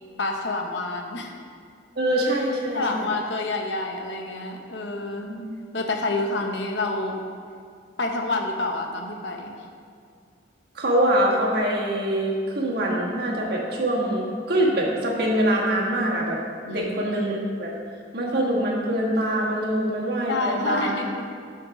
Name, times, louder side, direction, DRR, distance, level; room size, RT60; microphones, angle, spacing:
voice 1, 0.2-1.3 2.7-5.3 5.7-7.2 8.0-9.5 16.7-17.1 20.3-21.3, left 2 dB, 70° left, 3 dB, 0.9 m, -28 dB
voice 2, 1.9-3.1 5.3-5.4 10.7-16.4 16.6-17.7 18.1-21.0, right 1 dB, 60° right, -3 dB, 1.6 m, -24 dB
8.7 x 4.5 x 6.0 m, 2.1 s
head